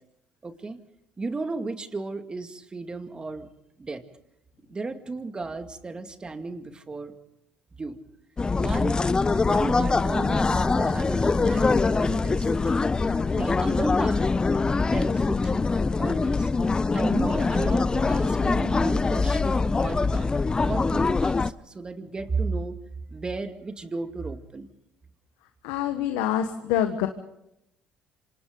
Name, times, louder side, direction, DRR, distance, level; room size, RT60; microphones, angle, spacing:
voice 1, 0.4-0.8 1.2-3.5 3.8-4.0 4.7-7.1 7.8-8.0 8.6-9.1 9.4-12.8 13.3-14.3 14.9-15.6 16.0-16.5 16.9-22.8 23.1-24.7, right 3 dB, 25° right, 7 dB, 2.3 m, -34 dB
sound 1, 8.4-21.5, left 4 dB, 25° left, 0.7 m, -23 dB
voice 2, 25.6-27.1, left 10 dB, 80° left, 7 dB, 1.3 m, -26 dB
27.0 x 26.0 x 3.9 m, 0.82 s
hypercardioid pair, 65°, 3 cm